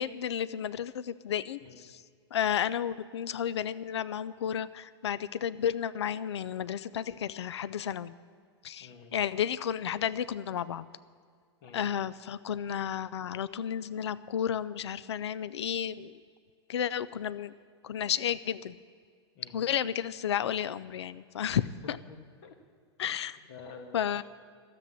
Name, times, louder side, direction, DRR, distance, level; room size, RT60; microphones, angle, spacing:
voice 1, 0.0-2.0 2.3-8.1 8.6-10.9 11.7-16.2 16.7-17.5 17.8-18.7 19.5-22.0 23.0-23.3 23.9-24.2, left 9 dB, 80° left, 17 dB, 0.5 m, -32 dB
voice 2, 8.8-9.1 11.6-11.9 19.3-19.6 21.5-21.6 22.1-22.5 23.0-24.2, left 5 dB, 55° left, 5 dB, 1.8 m, -50 dB
13.0 x 7.9 x 9.6 m, 2.1 s
hypercardioid pair, 110°, 14 cm